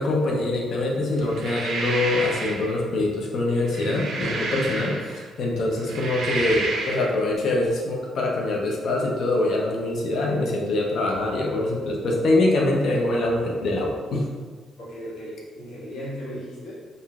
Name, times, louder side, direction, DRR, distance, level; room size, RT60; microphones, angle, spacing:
voice 1, 0.0-14.3, left 2 dB, 60° left, -1 dB, 0.6 m, -24 dB
sound 1, 1.2-2.7 3.5-5.3 5.8-7.1, right 3 dB, 65° right, 0.5 m, -30 dB
voice 2, 14.8-16.7, equal, 80° left, -9 dB, 1.5 m, -36 dB
3.8 x 2.6 x 2.3 m, 1.5 s
cardioid pair, 115°, 0 cm